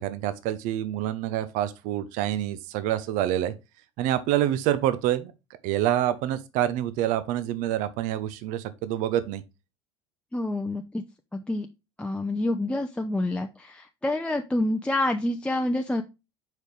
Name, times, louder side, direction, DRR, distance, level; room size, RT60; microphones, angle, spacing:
voice 1, 0.0-3.5 4.0-5.3 5.6-9.4, right 12 dB, 55° right, 0.8 m, -27 dB
voice 2, 10.3-11.0 11.3-11.7 12.0-16.0, left 1 dB, 5° left, 0.7 m, -27 dB
6.5 x 5.2 x 3.3 m
hypercardioid pair, 70°, 15 cm